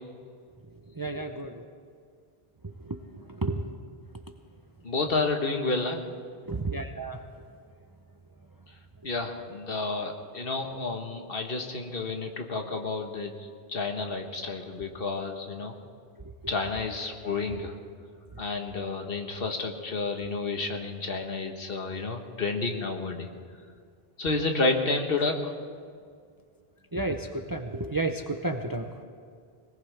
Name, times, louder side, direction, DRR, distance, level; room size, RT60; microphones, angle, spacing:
voice 1, 0.6-1.7 2.6-3.6 4.3-4.4 6.4-7.7 9.0-9.1 16.2-16.3 17.4-17.6 18.3-18.4 26.9-29.0, right 2 dB, 25° right, 6 dB, 0.6 m, -33 dB
voice 2, 4.8-6.0 9.0-15.7 16.5-17.7 18.4-23.3 24.2-25.5, left 3 dB, 65° left, 4 dB, 1.5 m, -30 dB
21.0 x 19.0 x 3.4 m, 2.1 s
omnidirectional pair, 1.0 m